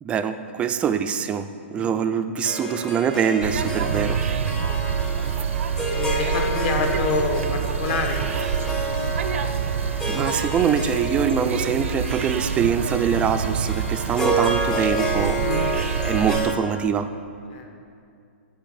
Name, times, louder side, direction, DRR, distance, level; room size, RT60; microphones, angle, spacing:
voice 1, 0.0-4.2 10.1-15.4 16.0-17.1, right 7 dB, 15° right, 9 dB, 0.3 m, -24 dB
Harp, 2.4-16.5, right 1 dB, 5° left, 0.7 m, -29 dB
sound 1, 3.4-16.5, right 7 dB, 75° right, 0.5 m, -27 dB
voice 2, 5.9-8.6 8.8-9.4 15.4-15.7 16.2-16.3 17.5-17.7, left 4 dB, 40° left, 2 dB, 1.2 m, -28 dB
9.0 x 4.8 x 7.3 m, 2.4 s
hypercardioid pair, 140°, 7 cm